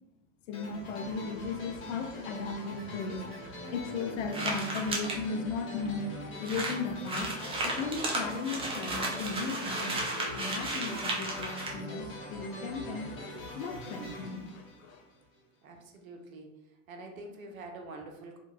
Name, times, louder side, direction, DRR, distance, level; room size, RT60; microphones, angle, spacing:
voice 1, 0.5-3.2 3.7-6.0 6.4-7.3 7.6-10.0 10.3-13.1 13.5-15.0, left 4 dB, 65° left, 5 dB, 0.5 m, -36 dB
sound 1, 0.5-15.4, left 1 dB, 30° left, 0.9 m, -43 dB
sound 2, 4.3-5.2 5.9-6.0 6.1-6.2 6.4-11.7, right 2 dB, 15° right, 0.4 m, -34 dB
voice 2, 15.6-16.5 16.9-18.4, right 2 dB, 80° right, 3 dB, 0.6 m, -45 dB
2.6 x 2.2 x 2.2 m, 0.94 s
hypercardioid pair, 90°, 40 cm